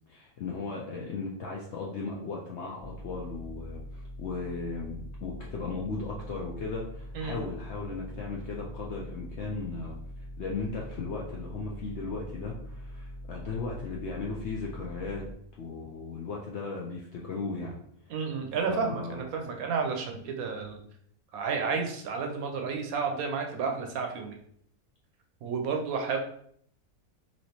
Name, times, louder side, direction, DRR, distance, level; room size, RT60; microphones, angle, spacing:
voice 1, 0.1-10.0 10.4-15.3 15.6-17.8 18.7-19.2, left 4 dB, 70° left, -2 dB, 0.6 m, -36 dB
sound 1, 2.8-15.3, left 1 dB, 55° right, 0.5 m, -43 dB
voice 2, 18.1-20.8 21.3-24.4 25.4-26.2, right 5 dB, 75° right, 3 dB, 1.0 m, -31 dB
3.1 x 2.8 x 2.8 m, 0.67 s
omnidirectional pair, 1.6 m